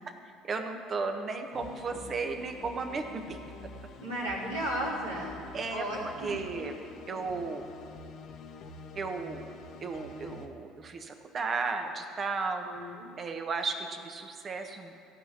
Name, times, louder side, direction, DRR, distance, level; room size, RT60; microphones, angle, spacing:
voice 1, 0.4-3.4 5.5-6.8 7.1-7.7 8.9-9.5 9.8-12.9 13.2-14.9, right 4 dB, 40° right, 5 dB, 1.4 m, -34 dB
sound 1, 1.5-10.5, left 3 dB, 55° left, 1.1 m, -47 dB
voice 2, 4.0-5.4 5.7-6.7 7.1-7.2 12.6-13.1, right 1 dB, 90° right, -7 dB, 3.4 m, -35 dB
15.5 x 6.0 x 8.3 m, 2.6 s
hypercardioid pair, 65°, 0 cm